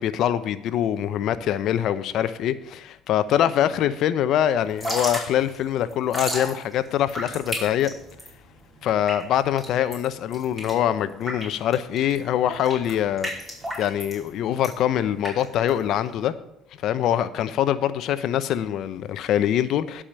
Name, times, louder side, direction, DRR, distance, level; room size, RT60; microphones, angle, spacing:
voice 1, 0.0-7.9 8.8-13.3 13.8-16.3 16.8-20.0, left 10 dB, 65° left, 0.7 m, -24 dB
Drip / Trickle dribble, 4.6-16.2, equal, 10° right, 4.8 m, -35 dB
11.5 x 5.0 x 7.4 m
supercardioid pair, 80°, 0 cm